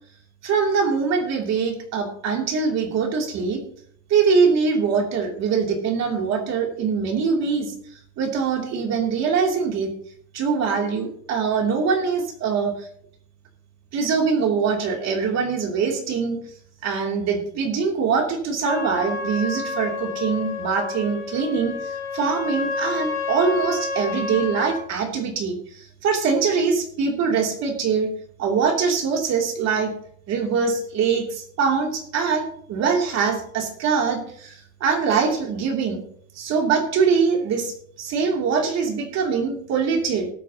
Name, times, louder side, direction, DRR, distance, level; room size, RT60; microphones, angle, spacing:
voice 1, 0.4-3.6 4.1-7.7 8.2-9.9 10.3-12.9 13.9-16.4 16.8-28.1 28.4-29.9 30.3-36.0 36.4-40.3, right 5 dB, 55° right, 1 dB, 2.9 m, -23 dB
Trumpet, 18.6-24.8, left 4 dB, 35° left, 3.0 m, -29 dB
19.0 x 8.5 x 2.9 m, 0.63 s
cardioid pair, 180°, 32 cm